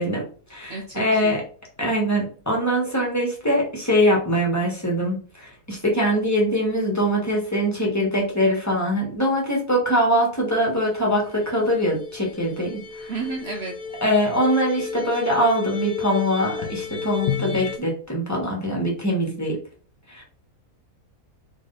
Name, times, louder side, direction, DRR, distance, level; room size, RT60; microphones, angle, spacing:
voice 1, 0.0-1.4 1.8-13.1 14.0-19.6 20.1-20.2, equal, 10° left, -1 dB, 1.3 m, -23 dB
voice 2, 0.7-1.4 13.1-13.7, right 4 dB, 55° right, 2 dB, 0.8 m, -32 dB
sound 1, 10.5-10.6 10.8-10.9 11.1-17.8, left 7 dB, 80° left, 1.1 m, -32 dB
4.0 x 3.1 x 3.9 m, 0.40 s
omnidirectional pair, 1.6 m